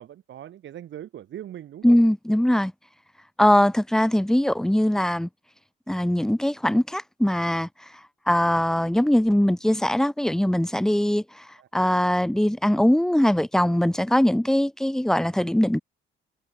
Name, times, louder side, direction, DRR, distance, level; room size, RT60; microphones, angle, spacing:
voice 1, 0.0-2.0 11.6-11.7, right 11 dB, 65° right, 2.3 m, -40 dB
voice 2, 1.8-2.7 3.4-5.3 5.9-7.7 8.3-11.4 11.7-15.8, left 1 dB, ahead, 0.9 m, -21 dB
cardioid pair, 80°, 21 cm